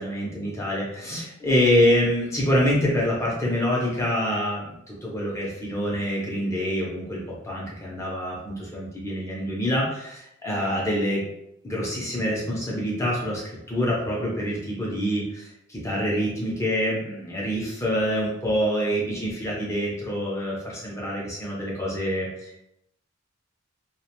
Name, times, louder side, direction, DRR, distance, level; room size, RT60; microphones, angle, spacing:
voice 1, 0.0-11.2 11.6-13.4 13.7-22.6, equal, 15° left, -4 dB, 0.4 m, -26 dB
2.3 x 2.1 x 2.8 m, 0.81 s
head